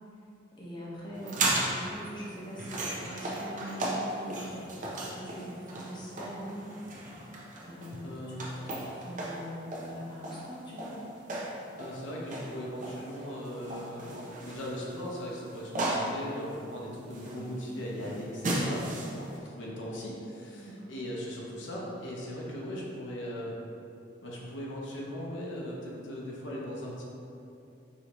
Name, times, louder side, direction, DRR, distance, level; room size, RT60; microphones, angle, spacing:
voice 1, 0.6-6.7 7.5-11.0 17.4-17.7 18.1-18.3 20.5-20.9, equal, 25° left, -6 dB, 0.8 m, -43 dB
sound 1, 1.1-19.4, right 1 dB, 40° right, 0.6 m, -36 dB
voice 2, 8.0-8.9 11.8-23.6 24.2-27.0, equal, 75° left, -3 dB, 0.7 m, -39 dB
5.0 x 2.7 x 3.0 m, 2.7 s
head